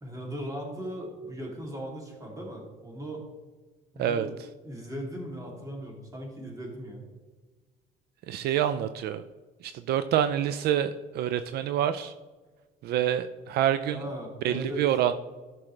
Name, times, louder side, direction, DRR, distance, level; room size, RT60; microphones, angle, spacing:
voice 1, 0.0-3.2 3.9-4.3 4.6-7.0 8.5-8.6 13.9-14.8, equal, 20° right, -1 dB, 2.9 m, -38 dB
voice 2, 8.3-9.2 9.6-12.1 12.8-14.0 14.4-15.1, right 10 dB, 70° right, 11 dB, 0.4 m, -27 dB
13.5 x 6.0 x 3.3 m, 1.3 s
cardioid pair, 110°, 17 cm